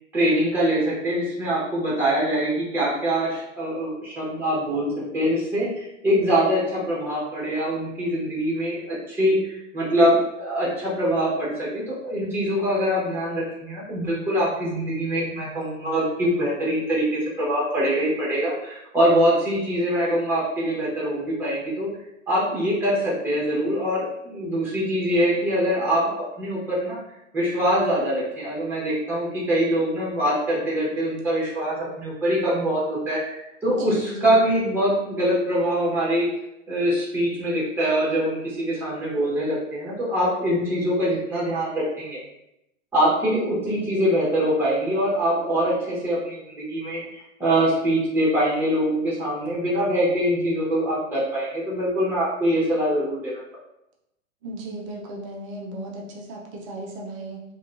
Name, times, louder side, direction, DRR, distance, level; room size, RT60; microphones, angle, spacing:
voice 1, 0.1-4.9 5.1-9.4 9.7-21.9 22.3-27.0 27.3-36.3 36.7-42.2 42.9-53.3, equal, 5° right, -6 dB, 0.8 m, -23 dB
voice 2, 33.7-34.5 54.4-57.4, right 1 dB, 25° right, -1 dB, 0.4 m, -35 dB
2.7 x 2.2 x 2.4 m, 0.87 s
hypercardioid pair, 125°, 39 cm